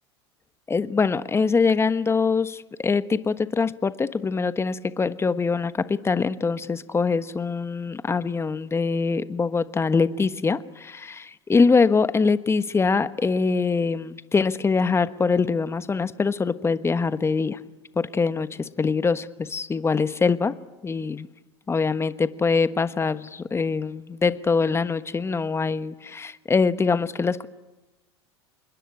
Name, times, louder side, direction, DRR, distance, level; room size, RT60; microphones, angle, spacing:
voice 1, 0.7-17.6 18.0-20.5 20.8-21.3 21.7-27.5, left 4 dB, 20° left, 13 dB, 1.3 m, -23 dB
26.5 x 21.5 x 9.8 m, 1.1 s
hypercardioid pair, 85°, 14 cm